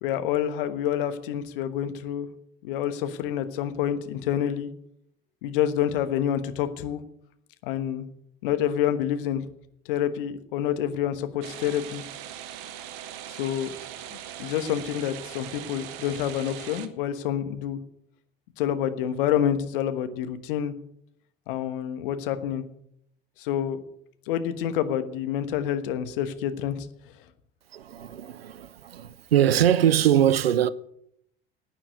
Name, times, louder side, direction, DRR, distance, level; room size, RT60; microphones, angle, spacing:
voice 1, 0.0-2.3 2.6-4.7 5.4-7.0 7.6-8.0 8.4-9.5 9.8-12.0 13.3-13.7 14.4-17.8 18.6-20.7 21.5-22.6 23.4-23.8 24.3-26.9, left 10 dB, 60° left, 1.3 m, -27 dB
sound 1, 11.4-16.9, right 11 dB, 55° right, 1.2 m, -40 dB
voice 2, 27.7-30.7, right 10 dB, 75° right, 0.6 m, -22 dB
11.5 x 9.1 x 8.2 m
figure-of-eight pair, 65°, 30 cm